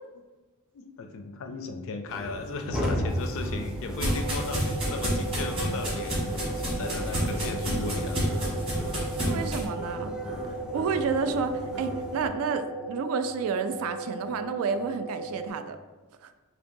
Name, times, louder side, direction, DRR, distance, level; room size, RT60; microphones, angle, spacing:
voice 1, 0.7-6.1 6.6-8.2, left 3 dB, 60° left, 6 dB, 0.4 m, -36 dB
sound 1, 2.1-12.3, equal, 5° right, 0.4 m, -35 dB
sound 2, 3.1-9.6, equal, 25° right, 1.3 m, -30 dB
sound 3, 4.0-15.5, right 2 dB, 45° right, 1.0 m, -37 dB
voice 2, 9.1-10.1 10.7-15.8 16.2-16.3, right 5 dB, 70° right, 10 dB, 0.3 m, -30 dB
5.2 x 2.2 x 2.6 m, 1.2 s
head